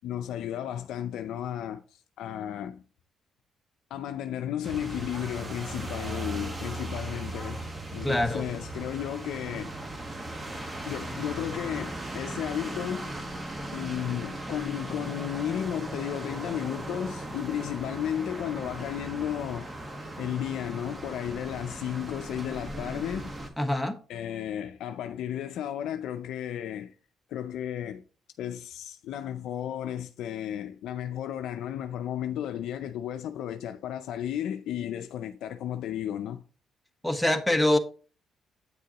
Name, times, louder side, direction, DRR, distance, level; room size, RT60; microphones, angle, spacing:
voice 1, 0.0-2.8 3.9-9.7 10.9-13.1 13.7-19.7 20.2-23.3 24.1-26.9 27.3-28.0 28.4-36.4, left 10 dB, 85° left, 0.5 m, -33 dB
sound 1, 4.6-23.5, right 1 dB, 25° right, 1.4 m, -38 dB
voice 2, 8.0-8.4 23.6-24.0 37.0-37.8, left 1 dB, 5° left, 1.1 m, -24 dB
8.5 x 6.6 x 2.9 m
cardioid pair, 90°, 0 cm